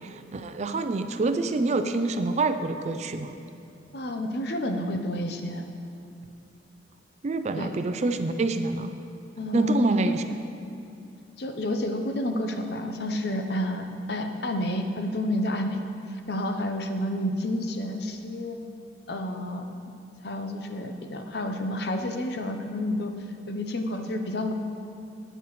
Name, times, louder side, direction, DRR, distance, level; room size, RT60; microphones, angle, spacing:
voice 1, 0.0-3.3 7.2-8.9 9.5-10.2, right 3 dB, 35° right, 9 dB, 0.4 m, -26 dB
voice 2, 3.9-5.6 7.6-7.7 9.4-10.4 11.4-15.8 16.1-18.6 19.1-19.6 20.2-23.1 23.5-24.5, left 1 dB, 60° left, 5 dB, 0.7 m, -30 dB
13.0 x 8.8 x 3.1 m, 2.6 s
head